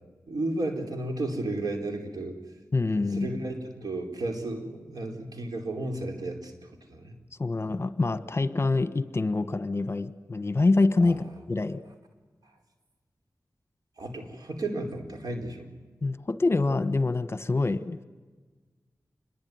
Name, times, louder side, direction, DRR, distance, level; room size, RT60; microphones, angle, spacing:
voice 1, 0.3-2.4 2.9-7.2 11.0-11.2 12.4-12.6 14.0-15.7, right 2 dB, 80° right, 3 dB, 4.5 m, -33 dB
voice 2, 2.7-3.4 7.4-11.8 16.0-18.0, left 3 dB, 40° left, 12 dB, 1.3 m, -26 dB
27.0 x 22.0 x 9.5 m, 1.3 s
wide cardioid pair, 90°, 6 cm